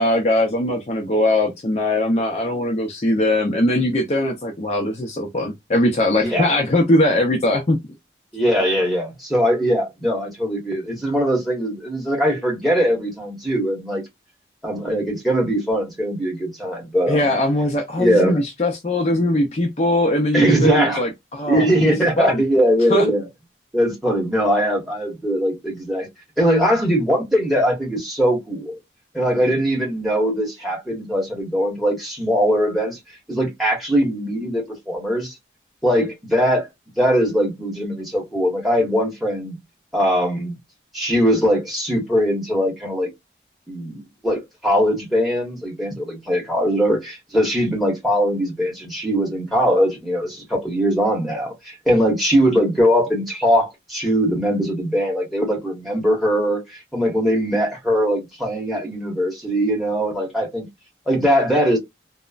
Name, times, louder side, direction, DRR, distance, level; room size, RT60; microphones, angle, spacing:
voice 1, 0.0-7.8 17.1-21.7 22.2-22.4 22.9-23.1, left 1 dB, 40° left, 0.5 m, -20 dB
voice 2, 6.2-6.6 8.3-14.0 14.6-17.3 18.0-18.4 20.3-21.0 21.4-23.2 23.7-26.1 26.4-28.8 29.1-33.0 33.3-35.3 35.8-36.7 37.0-39.6 39.9-40.5 40.9-43.1 43.7-60.7 61.1-61.8, equal, ahead, 1.2 m, -21 dB
3.0 x 2.0 x 2.4 m
head